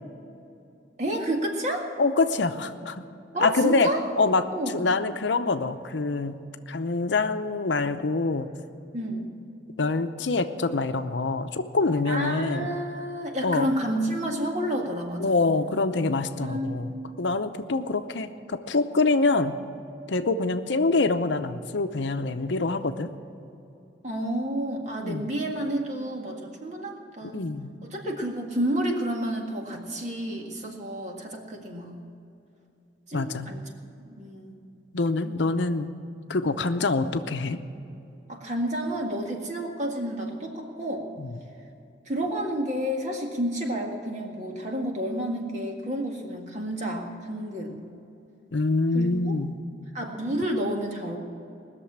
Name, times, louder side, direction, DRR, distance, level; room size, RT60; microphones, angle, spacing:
voice 1, 1.0-1.9 3.3-4.0 4.5-4.8 8.9-9.3 12.1-15.4 16.4-17.2 24.0-27.5 27.9-32.0 33.1-33.6 34.1-34.6 38.3-41.1 42.1-47.8 48.9-49.3 49.9-51.2, right 1 dB, 40° right, 1 dB, 1.8 m, -30 dB
voice 2, 2.0-3.0 3.4-4.5 4.7-6.4 6.7-8.5 9.8-12.7 13.4-13.7 15.2-19.6 20.1-23.1 25.0-25.3 27.2-27.7 33.1-33.5 34.9-35.9 36.3-37.6 41.2-41.4 48.5-49.6, left 3 dB, 75° left, 9 dB, 0.7 m, -25 dB
20.0 x 6.8 x 8.7 m, 2.7 s
head